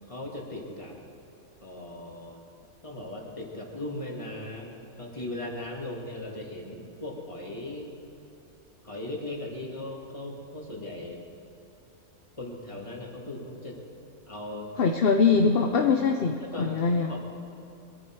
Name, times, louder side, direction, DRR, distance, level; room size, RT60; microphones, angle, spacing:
voice 1, 0.1-1.0 1.6-2.4 2.8-7.9 8.8-11.2 12.4-13.8 14.3-14.7 16.4-17.2, left 1 dB, 20° left, -2 dB, 2.5 m, -38 dB
voice 2, 14.8-17.1, left 5 dB, 50° left, 4 dB, 0.8 m, -23 dB
22.5 x 13.0 x 4.7 m, 2.8 s
omnidirectional pair, 1.5 m